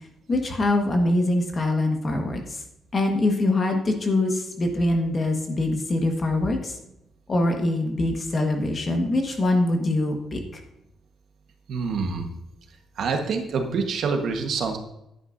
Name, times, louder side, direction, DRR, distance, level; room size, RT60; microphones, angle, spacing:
voice 1, 0.3-2.4 2.9-6.7 7.3-10.4, left 2 dB, 25° left, 3 dB, 1.4 m, -23 dB
voice 2, 11.7-12.3 13.0-14.8, right 5 dB, 55° right, 4 dB, 1.3 m, -26 dB
10.5 x 9.4 x 2.6 m, 0.84 s
cardioid pair, 175°, 0 cm